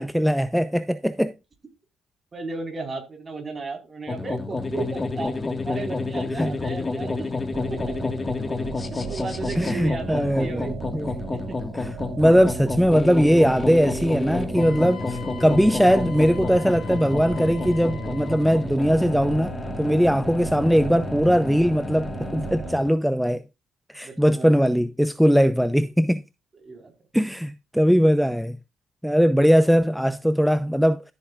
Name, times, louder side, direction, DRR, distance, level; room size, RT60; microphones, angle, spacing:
voice 1, 0.0-1.3 6.4-6.5 9.6-10.6 10.9-11.1 12.2-23.4 23.9-26.2 27.1-28.6 29.0-31.0, equal, ahead, 0.7 m, -20 dB
voice 2, 2.3-5.4 5.6-7.3 7.7-7.9 8.8-11.6 24.0-24.6 25.4-25.7 26.5-26.9, right 3 dB, 35° right, 4.4 m, -35 dB
sound 1, 4.1-22.9, left 3 dB, 25° left, 1.7 m, -30 dB
sound 2, 7.5-22.8, right 8 dB, 80° right, 3.3 m, -37 dB
Wind instrument woodwind instrument, 14.6-18.7, left 8 dB, 70° left, 2.9 m, -43 dB
14.0 x 8.2 x 2.4 m
cardioid pair, 90°, 0 cm